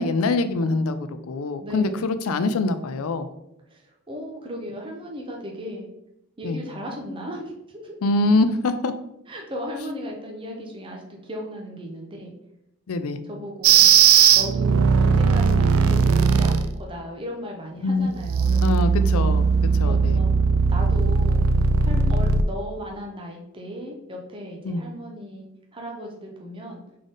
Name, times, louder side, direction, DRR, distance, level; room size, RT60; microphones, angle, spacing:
voice 1, 0.0-3.3 6.4-6.6 8.0-8.9 12.9-13.2 17.8-18.1 18.6-19.5 19.8-20.2 24.6-24.8, left 2 dB, 85° left, 11 dB, 0.4 m, -24 dB
voice 2, 1.6-2.1 3.7-5.9 6.4-8.0 9.3-12.3 13.2-13.9 14.3-19.2 19.8-20.3 20.7-21.4 21.8-26.8, equal, 25° right, 0 dB, 0.7 m, -36 dB
sound 1, 13.6-16.7 18.1-22.4, right 5 dB, 70° right, 0.3 m, -18 dB
3.8 x 3.5 x 3.8 m, 0.83 s
head